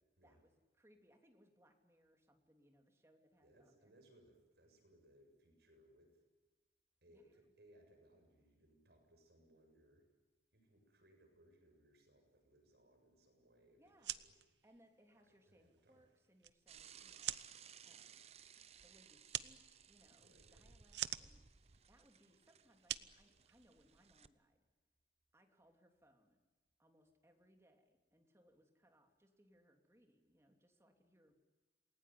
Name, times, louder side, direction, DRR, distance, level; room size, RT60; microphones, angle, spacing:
voice 1, 0.2-3.9 7.1-7.2 13.8-14.2 14.6-17.4 17.8-18.2 18.8-19.6 19.9-24.7 25.3-26.4 26.8-31.4, equal, 15° right, 3 dB, 3.1 m, -71 dB
voice 2, 3.4-6.2 7.0-10.0 10.5-14.3 15.3-16.1 20.2-20.7, right 1 dB, 70° right, 3 dB, 7.7 m, -68 dB
sound 1, 13.9-24.1, right 12 dB, 85° right, 0.9 m, -48 dB
Bicycle / Mechanisms, 16.7-24.3, right 8 dB, 35° right, 0.8 m, -61 dB
28.0 x 20.0 x 9.5 m, 1.2 s
head